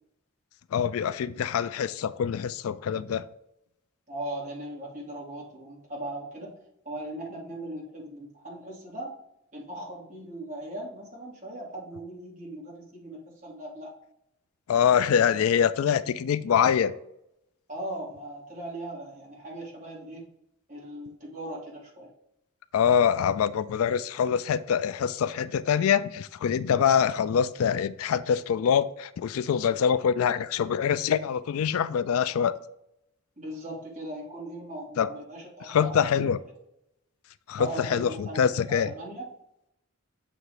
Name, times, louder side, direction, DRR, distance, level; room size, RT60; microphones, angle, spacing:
voice 1, 0.7-3.2 14.7-16.9 22.7-32.5 35.0-35.1 35.7-36.4 37.5-38.9, left 8 dB, 75° left, 15 dB, 0.3 m, -24 dB
voice 2, 4.1-6.6 6.8-9.1 9.5-13.9 17.7-20.3 20.7-22.1 33.4-36.3 37.6-38.4 38.7-39.3, right 1 dB, 35° right, -4 dB, 2.2 m, -39 dB
7.7 x 3.0 x 4.7 m, 0.80 s
head